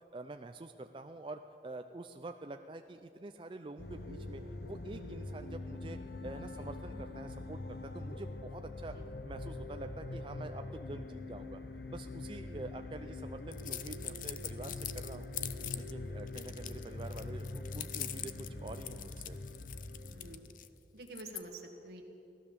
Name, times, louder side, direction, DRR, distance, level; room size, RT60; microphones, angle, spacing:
voice 1, 0.1-4.4 4.7-9.0 9.2-11.6 11.9-15.3 15.7-19.4, right 2 dB, 30° right, 6 dB, 0.4 m, -47 dB
sound 1, 3.8-20.4, left 2 dB, 70° left, 0.9 m, -43 dB
sound 2, 13.5-15.9 16.3-20.7 21.1-21.4, left 12 dB, 50° left, 0.5 m, -43 dB
voice 2, 20.1-20.5 20.9-22.0, right 2 dB, 70° right, 2 dB, 1.7 m, -48 dB
16.0 x 12.0 x 7.1 m, 2.8 s
head